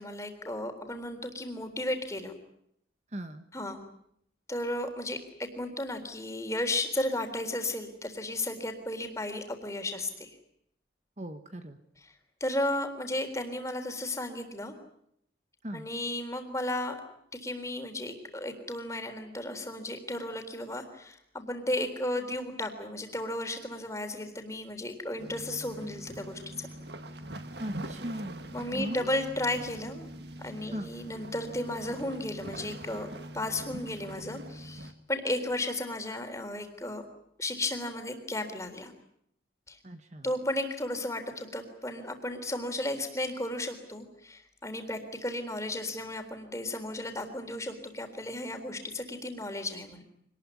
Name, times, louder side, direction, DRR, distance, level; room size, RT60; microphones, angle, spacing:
voice 1, 0.0-2.3 3.5-3.8 4.5-10.4 12.4-14.7 15.7-17.0 17.3-26.7 28.5-30.1 30.4-33.1 33.3-37.0 37.4-38.9 39.7-39.8 40.2-50.0, left 1 dB, 15° left, 5 dB, 3.7 m, -34 dB
voice 2, 3.1-3.5 11.2-11.8 15.6-15.9 27.6-28.4 28.7-29.1 30.7-30.9 39.8-40.3, right 1 dB, 35° right, 8 dB, 1.4 m, -38 dB
sound 1, 25.2-34.9, right 1 dB, 60° right, 1.8 m, -43 dB
25.5 x 20.0 x 9.8 m, 0.73 s
head